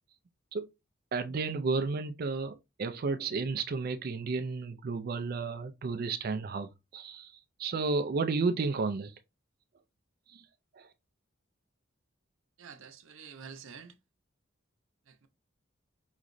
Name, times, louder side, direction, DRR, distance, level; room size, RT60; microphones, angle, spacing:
voice 1, 1.1-9.1 10.3-10.4 10.8-10.9, right 4 dB, 50° right, 0.4 m, -32 dB
voice 2, 12.6-14.0 15.1-15.3, right 6 dB, 85° right, 0.7 m, -48 dB
4.8 x 3.1 x 2.5 m
head